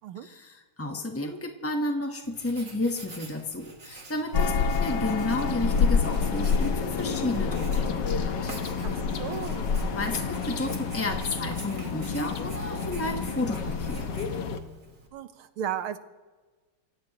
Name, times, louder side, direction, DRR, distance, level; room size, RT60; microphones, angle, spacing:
voice 1, 0.2-8.6 9.9-14.2, left 2 dB, 15° left, 3 dB, 0.5 m, -32 dB
Writing, 2.2-15.1, right 2 dB, 35° right, 2.6 m, -48 dB
sound 1, 4.3-14.6, left 5 dB, 60° left, 1.6 m, -28 dB
voice 2, 8.8-9.7 15.1-16.0, right 10 dB, 75° right, 10 dB, 1.7 m, -35 dB
27.0 x 16.0 x 3.0 m, 1.3 s
omnidirectional pair, 2.4 m